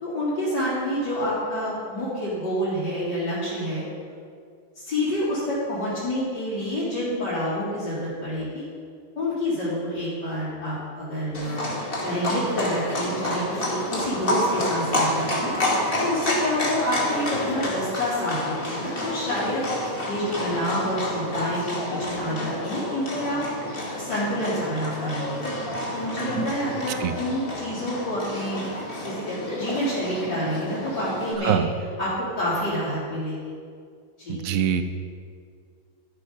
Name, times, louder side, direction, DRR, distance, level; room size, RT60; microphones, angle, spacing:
voice 1, 0.0-3.8 4.8-8.6 9.2-11.6 12.0-15.5 16.0-19.6 20.1-23.4 24.0-25.4 25.9-28.7 29.0-31.6 32.0-33.5 34.2-34.5, equal, 55° left, -14 dB, 4.1 m, -28 dB
Livestock farm animals working animals, 11.3-31.3, left 1 dB, 25° left, 1.9 m, -29 dB
voice 2, 34.3-34.8, right 9 dB, 70° right, 9 dB, 0.8 m, -23 dB
13.5 x 8.4 x 5.4 m, 2.2 s
omnidirectional pair, 2.3 m